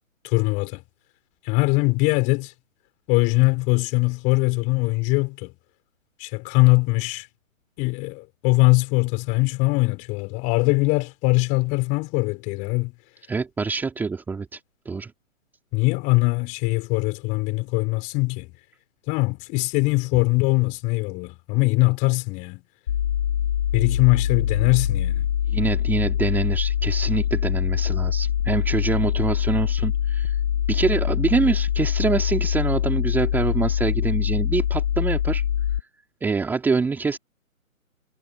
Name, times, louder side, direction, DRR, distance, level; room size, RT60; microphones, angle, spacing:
voice 1, 0.2-0.8 1.5-2.5 3.1-5.5 6.2-7.3 7.8-12.9 15.7-18.5 19.1-22.6 23.7-25.2, left 26 dB, 20° left, 5.7 m, -21 dB
voice 2, 13.3-14.6 14.9-15.1 25.5-30.4 30.7-35.4 36.2-37.2, right 4 dB, 5° right, 3.4 m, -25 dB
sound 1, 22.9-35.8, left 10 dB, 40° left, 4.5 m, -24 dB
figure-of-eight pair, 155°, 41 cm